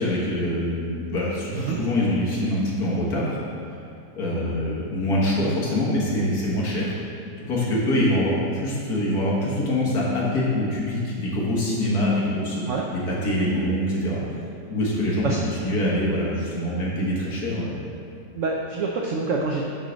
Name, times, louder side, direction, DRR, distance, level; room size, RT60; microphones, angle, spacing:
voice 1, 0.0-3.4 4.1-6.9 7.4-12.6 13.1-14.2 14.7-15.4 15.6-17.8, left 1 dB, 60° left, -6 dB, 1.8 m, -24 dB
voice 2, 18.3-19.7, right 4 dB, 80° right, 0 dB, 0.7 m, -26 dB
8.2 x 4.8 x 3.9 m, 2.5 s
omnidirectional pair, 1.9 m